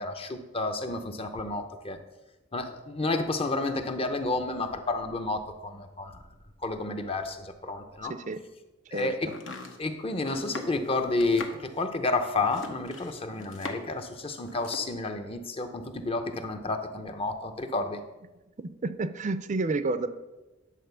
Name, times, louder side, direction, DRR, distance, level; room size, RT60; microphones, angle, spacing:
voice 1, 0.0-2.0 2.5-6.1 6.6-8.1 8.9-9.3 9.8-18.0, left 3 dB, 30° left, 7 dB, 0.7 m, -30 dB
voice 2, 8.1-8.4 8.9-9.1 18.6-20.1, right 3 dB, 40° right, 12 dB, 0.5 m, -30 dB
Domestic sounds home sounds, 9.2-14.0 14.3-14.9, left 3 dB, 75° left, 1.1 m, -41 dB
10.0 x 4.0 x 6.9 m, 1.1 s
head